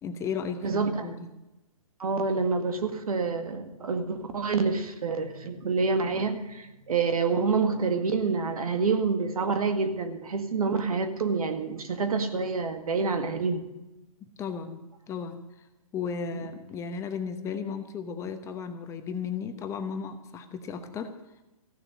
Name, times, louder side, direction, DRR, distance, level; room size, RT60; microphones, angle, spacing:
voice 1, 0.0-1.3 14.4-15.4 15.9-21.1, left 6 dB, 15° left, 7 dB, 1.0 m, -35 dB
voice 2, 0.6-1.1 2.0-13.7 16.3-16.4, right 4 dB, 80° right, 7 dB, 1.9 m, -27 dB
15.0 x 7.0 x 9.6 m, 0.96 s
hypercardioid pair, 145°, 18 cm